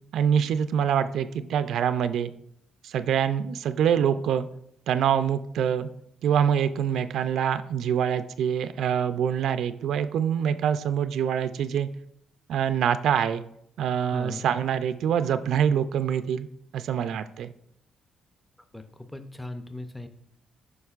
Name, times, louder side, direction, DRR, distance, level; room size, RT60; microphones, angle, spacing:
voice 1, 0.1-2.3 2.8-4.5 4.9-5.9 6.2-11.9 12.5-13.4 13.8-16.5 16.7-17.5, right 8 dB, 75° right, 12 dB, 0.3 m, -25 dB
voice 2, 14.1-14.4 18.7-20.1, left 2 dB, 10° left, 8 dB, 0.5 m, -38 dB
7.8 x 5.5 x 2.4 m, 0.71 s
cardioid pair, 90°, 0 cm